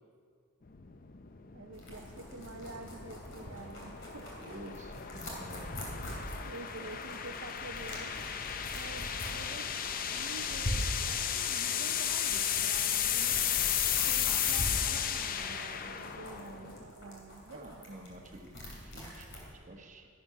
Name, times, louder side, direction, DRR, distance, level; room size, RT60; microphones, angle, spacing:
sound 1, 0.7-16.9, left 9 dB, 40° left, 0.5 m, -34 dB
voice 1, 1.5-4.7 5.6-6.0 6.4-8.1 8.7-9.8 10.1-18.0, right 3 dB, 60° right, 4 dB, 0.6 m, -48 dB
sound 2, 1.7-19.5, equal, 60° left, 3.2 m, -43 dB
voice 2, 4.4-5.8 17.5-20.1, right 1 dB, 35° right, 3 dB, 1.2 m, -50 dB
12.0 x 11.5 x 5.9 m, 2.2 s
head